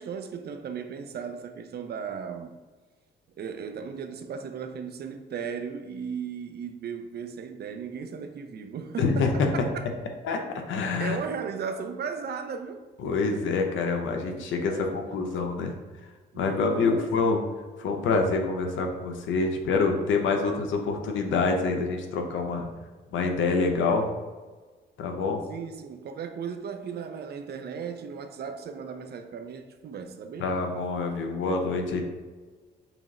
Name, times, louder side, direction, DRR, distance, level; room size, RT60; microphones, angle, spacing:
voice 1, 0.0-2.5 3.4-9.9 11.0-12.8 14.1-15.3 16.3-17.4 25.5-30.5, right 6 dB, 55° right, 0.5 m, -36 dB
voice 2, 9.0-9.3 10.2-11.2 13.0-15.7 16.3-17.4 17.8-22.7 23.1-24.1 25.0-25.4 30.4-32.0, left 4 dB, 75° left, 0.7 m, -26 dB
6.0 x 2.0 x 3.7 m
cardioid pair, 90°, 20 cm